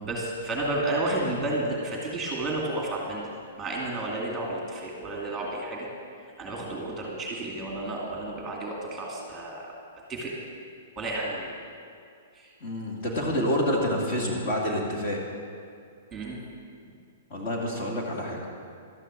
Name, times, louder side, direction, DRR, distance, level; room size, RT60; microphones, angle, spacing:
voice 1, 0.0-3.3 3.6-5.9 6.4-9.7 10.1-10.3 11.0-11.5 12.3-12.5 16.1-16.4, right 2 dB, 10° right, -2 dB, 2.4 m, -31 dB
voice 2, 12.6-15.2 17.3-18.4, left 1 dB, 35° left, -2 dB, 2.4 m, -28 dB
12.5 x 9.8 x 7.6 m, 2.3 s
hypercardioid pair, 160°, 0 cm